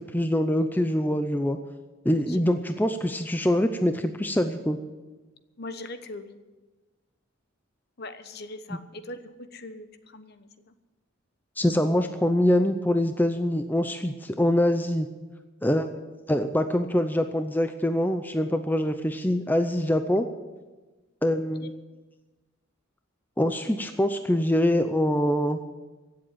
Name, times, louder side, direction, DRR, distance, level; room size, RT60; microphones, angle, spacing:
voice 1, 0.0-1.6 2.0-4.8 11.6-15.1 15.6-15.9 16.3-20.3 21.2-21.7 23.4-25.6, left 1 dB, 10° left, 7 dB, 0.6 m, -24 dB
voice 2, 5.6-6.4 8.0-10.7 21.3-21.7, left 2 dB, 50° left, 10 dB, 1.0 m, -41 dB
16.5 x 7.7 x 9.1 m, 1.2 s
head